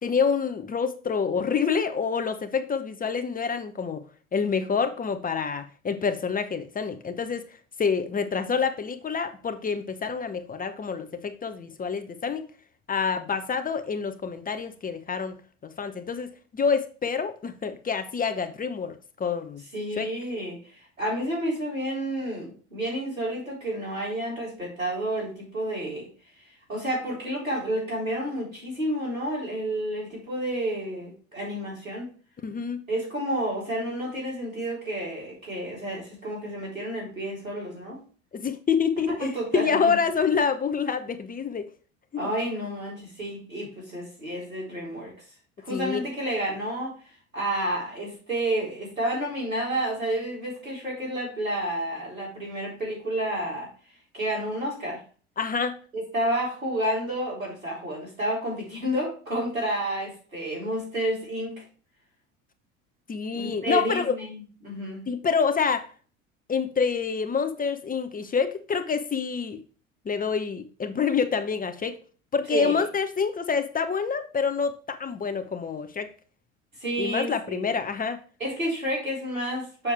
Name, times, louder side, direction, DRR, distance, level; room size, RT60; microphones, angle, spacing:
voice 1, 0.0-4.0 4.3-7.5 7.8-12.4 12.9-15.4 15.6-19.6 20.0-20.1 32.4-32.8 38.3-41.7 42.1-42.3 45.7-46.0 55.4-55.8 63.1-64.1 65.1-65.8 66.5-69.6 70.0-72.0 72.3-76.1 77.0-78.2, left 6 dB, 20° left, 9 dB, 0.9 m, -27 dB
voice 2, 19.7-26.1 26.7-32.1 32.9-38.0 39.2-40.0 42.2-45.1 45.6-47.0 47.3-53.7 54.1-55.0 55.9-61.6 63.3-65.1 72.5-72.9 76.8-77.7 78.4-79.9, right 1 dB, 90° right, -3 dB, 4.2 m, -30 dB
7.2 x 6.5 x 3.4 m, 0.39 s
figure-of-eight pair, 70°, 39 cm